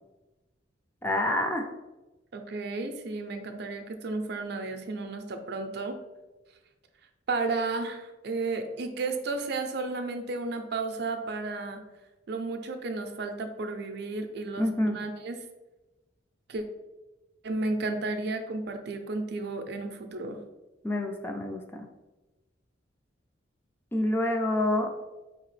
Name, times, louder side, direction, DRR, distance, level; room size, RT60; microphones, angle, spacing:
voice 1, 1.0-1.7 14.6-15.0 20.8-21.8 23.9-24.9, left 1 dB, 10° left, 3 dB, 0.3 m, -27 dB
voice 2, 2.3-6.0 7.3-11.8 12.3-14.7 14.9-15.4 16.5-16.6 17.4-20.4, right 3 dB, 60° right, 6 dB, 0.5 m, -33 dB
4.6 x 2.9 x 3.1 m, 1.1 s
head